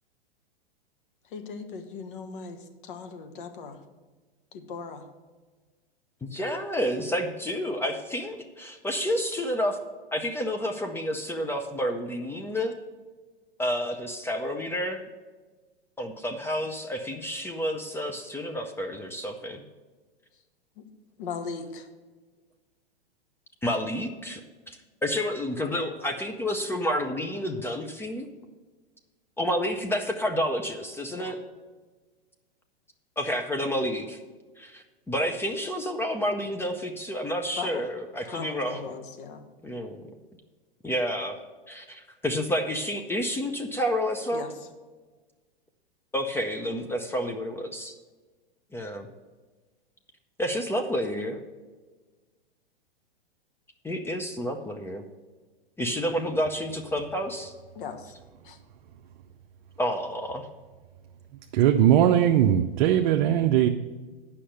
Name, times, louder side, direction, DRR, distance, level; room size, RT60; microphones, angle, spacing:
voice 1, 1.3-3.8 4.5-5.0 20.8-20.9 21.2-21.9 31.2-31.3 37.6-37.8 38.2-39.4 44.3-44.5 57.7-58.1 58.4-58.6, left 5 dB, 60° left, 6 dB, 1.4 m, -38 dB
voice 2, 6.2-9.8 10.1-12.7 13.6-15.0 16.0-19.6 23.6-24.4 24.7-28.3 29.4-31.4 33.2-34.2 34.6-38.8 39.6-40.0 40.8-41.4 41.7-44.5 46.1-48.0 48.7-49.1 50.4-51.4 53.8-55.0 55.8-57.5 59.8-60.5, equal, 10° left, 4 dB, 0.6 m, -30 dB
voice 3, 61.5-63.7, right 10 dB, 50° right, 4 dB, 0.7 m, -20 dB
8.5 x 5.7 x 6.5 m, 1.3 s
hypercardioid pair, 115°, 30 cm